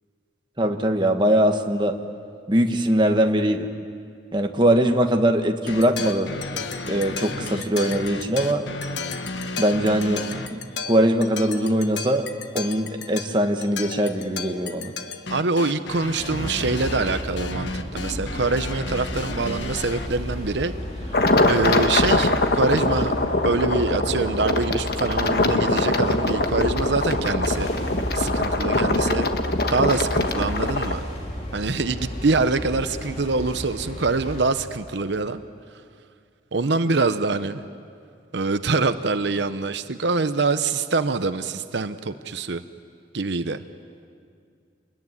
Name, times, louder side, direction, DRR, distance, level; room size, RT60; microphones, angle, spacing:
voice 1, 0.6-2.0 2.5-3.7 4.3-6.3 6.9-8.6 9.5-10.2 10.5-12.3 12.5-14.9, right 1 dB, 25° right, 4 dB, 1.4 m, -21 dB
sound 1, 5.7-20.1, left 3 dB, 80° left, 1.3 m, -33 dB
voice 2, 15.3-20.7 21.5-23.1 23.4-27.7 28.1-29.3 29.7-31.0 31.5-35.4 36.5-37.6 38.3-42.6 43.1-43.6, right 3 dB, 75° right, 10 dB, 0.8 m, -24 dB
sound 2, 16.2-34.4, equal, 35° left, 3.3 m, -32 dB
sound 3, 21.1-31.0, left 2 dB, 55° left, 1.3 m, -23 dB
27.5 x 21.5 x 9.6 m, 2.3 s
head